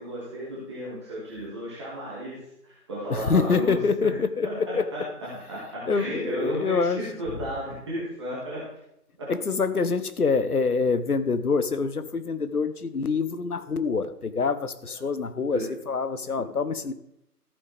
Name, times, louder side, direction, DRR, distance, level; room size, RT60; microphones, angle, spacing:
voice 1, 0.0-4.1 4.4-8.6 9.2-9.3 15.5-15.7, right 1 dB, 15° right, -8 dB, 1.9 m, -34 dB
voice 2, 3.1-4.9 5.9-7.0 9.3-16.9, left 4 dB, 65° left, 12 dB, 1.0 m, -26 dB
14.0 x 8.7 x 3.4 m, 0.80 s
figure-of-eight pair, 155°, 48 cm